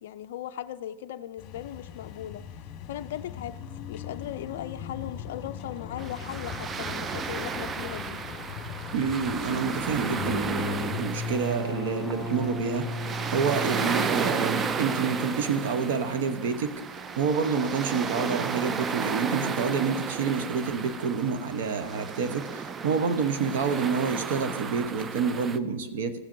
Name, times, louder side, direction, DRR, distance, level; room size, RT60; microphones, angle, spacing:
voice 1, 0.0-2.5 2.9-3.6 3.9-8.2, left 12 dB, 60° left, 0.3 m, -38 dB
sound 1, 1.4-10.6, left 8 dB, 35° left, 1.1 m, -40 dB
sound 2, 6.0-25.6, right 5 dB, 20° right, 0.3 m, -33 dB
voice 2, 8.9-26.2, right 5 dB, 65° right, 0.9 m, -28 dB
sound 3, 10.0-15.5, left 1 dB, 10° left, 2.4 m, -35 dB
14.5 x 7.3 x 2.6 m
hypercardioid pair, 135°, 0 cm